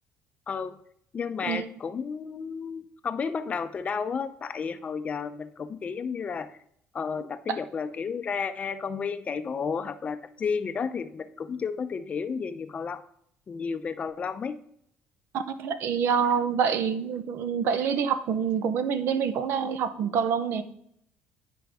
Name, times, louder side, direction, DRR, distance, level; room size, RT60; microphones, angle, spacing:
voice 1, 0.5-0.8 1.1-6.6 6.9-13.0 13.5-14.6, left 5 dB, 30° left, 10 dB, 0.5 m, -32 dB
voice 2, 15.3-20.6, right 7 dB, 65° right, 11 dB, 0.7 m, -26 dB
10.5 x 5.1 x 3.5 m, 0.69 s
cardioid pair, 130°, 4 cm